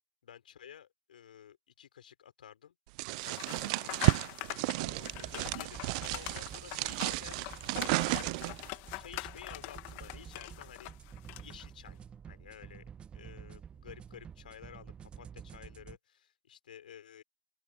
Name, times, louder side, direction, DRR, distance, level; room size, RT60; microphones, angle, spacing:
voice 1, 0.2-2.7 3.2-3.3 3.6-4.0 4.7-8.5 9.0-10.9 11.4-12.0 12.3-12.8 13.1-17.2, left 9 dB, 70° left, 4.7 m, -52 dB
sound 1, 3.0-8.7, right 26 dB, 50° right, 0.8 m, -32 dB
sound 2, 3.2-11.7, left 30 dB, 45° left, 2.5 m, -44 dB
sound 3, 4.8-16.0, right 7 dB, 20° right, 1.2 m, -50 dB
open air
figure-of-eight pair, 95°, 5 cm